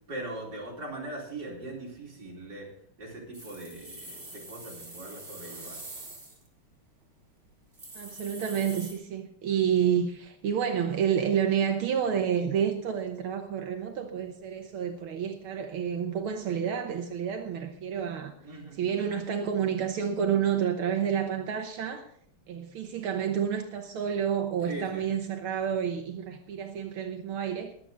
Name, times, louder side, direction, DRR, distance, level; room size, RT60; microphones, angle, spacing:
voice 1, 0.1-2.7 3.0-5.8 18.4-18.8 24.7-25.1, right 2 dB, 50° right, 4.8 m, -40 dB
sound 1, 3.3-6.5 7.0-7.1 7.4-7.5 7.7-8.9, right 2 dB, 30° right, 3.3 m, -44 dB
voice 2, 8.0-18.3 18.7-22.1 22.5-27.7, right 8 dB, 75° right, 1.9 m, -29 dB
21.5 x 8.7 x 3.9 m
omnidirectional pair, 2.4 m